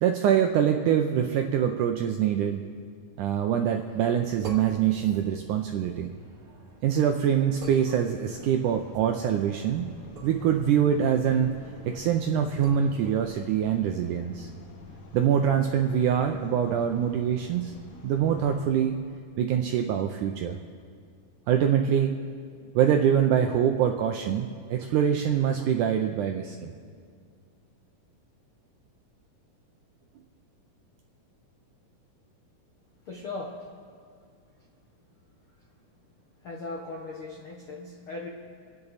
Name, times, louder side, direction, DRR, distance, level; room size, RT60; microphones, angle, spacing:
voice 1, 0.0-2.6 3.2-6.1 6.8-9.9 10.2-11.5 11.9-14.5 15.1-17.7 18.0-19.0 19.4-20.6 21.5-22.2 22.8-26.7, right 9 dB, 80° right, 4 dB, 1.8 m, -24 dB
sound 1, 3.7-14.1, right 4 dB, 40° right, 3.3 m, -48 dB
sound 2, 8.3-18.7, left 1 dB, 55° left, 1.7 m, -48 dB
voice 2, 33.0-33.6 36.4-38.3, left 3 dB, 70° left, -1 dB, 1.2 m, -38 dB
28.5 x 9.8 x 4.1 m, 2.2 s
omnidirectional pair, 4.3 m